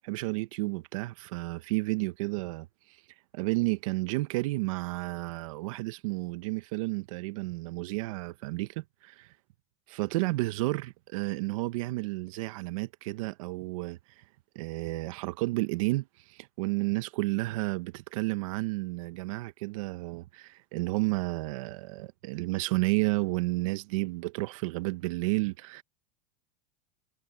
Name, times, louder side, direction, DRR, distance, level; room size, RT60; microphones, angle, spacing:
voice 1, 0.0-2.7 3.3-9.3 9.9-14.2 14.5-25.8, right 22 dB, 70° right, 1.3 m, -31 dB
supercardioid pair, 125°, 18 cm